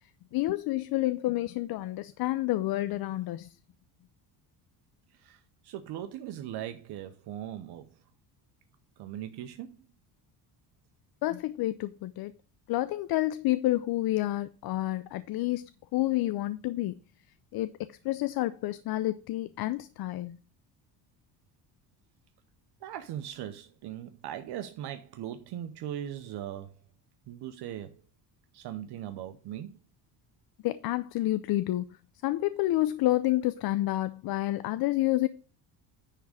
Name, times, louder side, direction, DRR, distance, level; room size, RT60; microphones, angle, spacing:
voice 1, 0.3-3.5 11.2-12.3 12.7-17.0 17.5-20.4 30.6-31.9 32.2-35.3, left 16 dB, 55° left, 0.5 m, -29 dB
voice 2, 5.2-7.9 9.0-9.8 22.8-26.7 27.3-27.9 28.5-29.8, right 11 dB, 65° right, 0.8 m, -39 dB
10.0 x 3.6 x 6.4 m
cardioid pair, 115°, 43 cm